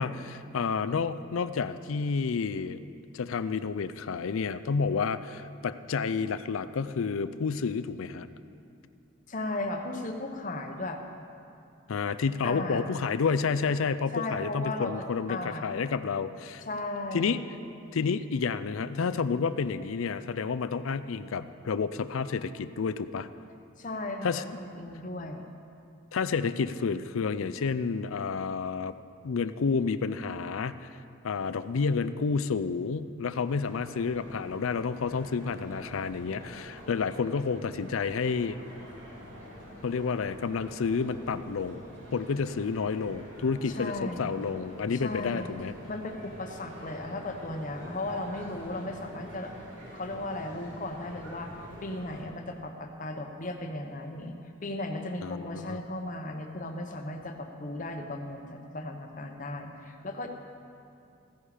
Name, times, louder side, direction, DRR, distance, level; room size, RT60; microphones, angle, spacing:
voice 1, 0.0-2.8 3.1-8.3 11.9-16.6 17.1-17.4 17.9-23.3 24.2-24.4 26.1-29.0 29.2-31.0 31.2-38.6 39.8-41.8 42.1-45.7 55.2-55.8, left 5 dB, 85° left, 13 dB, 0.5 m, -30 dB
voice 2, 9.3-11.0 12.4-13.0 14.1-14.9 15.3-15.7 16.6-17.4 23.8-25.5 43.7-44.3 44.9-45.5 45.9-49.5 49.9-60.3, left 2 dB, 40° left, 4 dB, 1.0 m, -36 dB
sound 1, 33.4-52.2, equal, 70° right, 3.7 m, -46 dB
15.5 x 10.0 x 5.0 m, 2.5 s
head